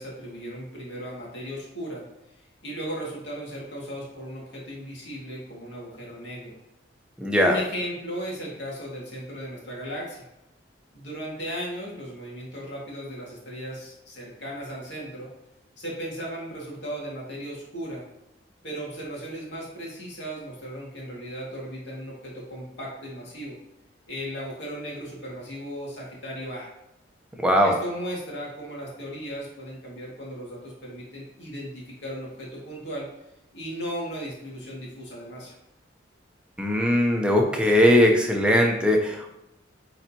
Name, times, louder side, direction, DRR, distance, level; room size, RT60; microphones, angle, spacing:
voice 1, 0.0-2.0 2.6-6.6 7.4-10.3 10.9-15.3 15.8-18.1 18.6-23.6 24.1-26.7 27.6-33.1 33.5-35.6, equal, 65° left, -4 dB, 2.2 m, -36 dB
voice 2, 7.2-7.5 27.4-27.7 36.6-39.3, equal, 5° right, 1 dB, 0.8 m, -20 dB
9.0 x 4.0 x 2.9 m, 0.89 s
head